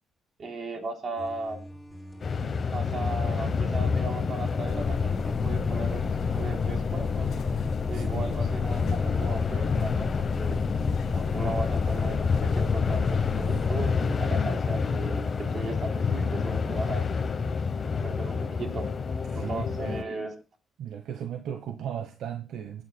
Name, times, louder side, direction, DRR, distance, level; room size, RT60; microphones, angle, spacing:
voice 1, 0.4-1.6 2.7-7.3 7.9-10.6 11.1-17.1 18.0-18.9 19.3-20.3, right 2 dB, 50° right, 3 dB, 3.5 m, -37 dB
sound 1, 1.2-15.7, equal, ahead, 7.3 m, -44 dB
sound 2, 2.2-20.0, left 5 dB, 45° left, 0.9 m, -28 dB
voice 2, 3.3-3.6 7.9-8.4 19.3-20.0 20.8-22.8, right 9 dB, 80° right, 6 dB, 1.1 m, -37 dB
sound 3, 4.7-13.8, left 5 dB, 65° left, 1.4 m, -37 dB
26.0 x 9.1 x 2.3 m, 0.32 s
cardioid pair, 90°, 0 cm